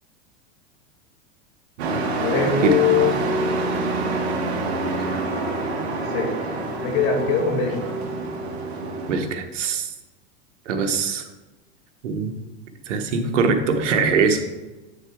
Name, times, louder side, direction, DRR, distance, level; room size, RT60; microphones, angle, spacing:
Truck, 1.8-9.2, right 2 dB, 65° right, 1.7 m, -26 dB
voice 1, 2.2-3.1 4.9-5.2 6.0-7.9, left 6 dB, 60° left, 2 dB, 2.0 m, -23 dB
voice 2, 9.1-9.9 10.7-11.3 12.0-12.3 12.9-14.5, right 5 dB, 85° right, 6 dB, 1.3 m, -22 dB
8.8 x 6.5 x 3.7 m, 1.1 s
supercardioid pair, 135°, 35 cm